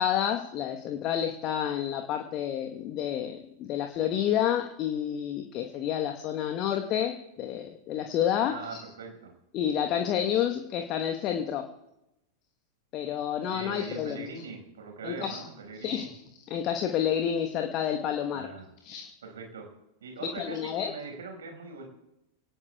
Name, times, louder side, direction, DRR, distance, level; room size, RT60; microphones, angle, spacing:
voice 1, 0.0-8.8 9.5-11.7 12.9-14.3 15.0-15.4 15.8-16.2 16.5-18.5 18.8-19.1 20.4-20.9, left 9 dB, 35° left, 5 dB, 1.2 m, -29 dB
voice 2, 8.4-9.3 13.4-16.1 18.3-18.7 19.2-19.7 20.0-21.8, right 4 dB, 65° right, 2 dB, 5.3 m, -41 dB
28.0 x 18.0 x 2.3 m, 0.90 s
figure-of-eight pair, 90°, 0 cm